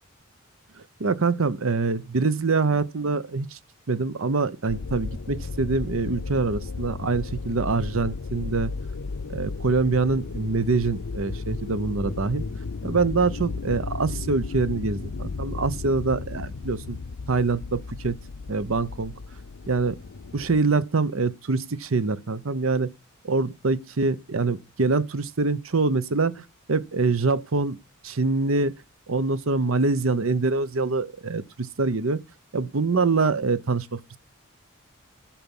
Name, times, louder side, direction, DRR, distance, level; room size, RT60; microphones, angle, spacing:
voice 1, 0.8-3.6 3.9-8.7 9.3-12.4 12.8-17.0 17.3-18.2 18.5-19.1 19.7-20.0 20.3-22.9 23.2-27.8 28.0-28.7 29.1-32.2 32.5-34.0, right 3 dB, 70° right, 0.8 m, -25 dB
sound 1, 4.7-20.6, left 4 dB, 85° left, 0.6 m, -34 dB
13.5 x 5.9 x 5.4 m
head